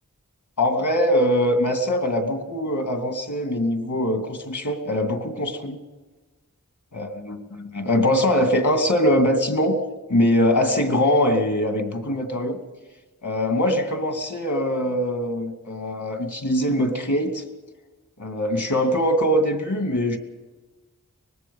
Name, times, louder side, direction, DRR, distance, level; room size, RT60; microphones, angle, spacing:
voice 1, 0.6-5.8 6.9-9.8 10.1-12.6 13.2-17.4 18.2-20.2, equal, 65° left, 5 dB, 2.6 m, -22 dB
24.0 x 20.0 x 5.6 m, 1.2 s
wide cardioid pair, 50°, 32 cm